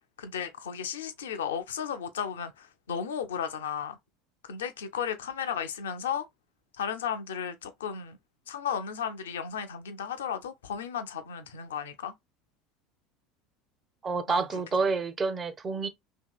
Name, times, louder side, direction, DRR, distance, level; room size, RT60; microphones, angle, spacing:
voice 1, 0.2-4.0 4.4-6.3 6.8-8.2 8.5-12.1 14.3-14.5, left 8 dB, 75° left, 0.4 m, -34 dB
voice 2, 14.0-15.9, right 4 dB, 30° right, 0.5 m, -28 dB
2.8 x 2.7 x 2.3 m
hypercardioid pair, 75°, 0 cm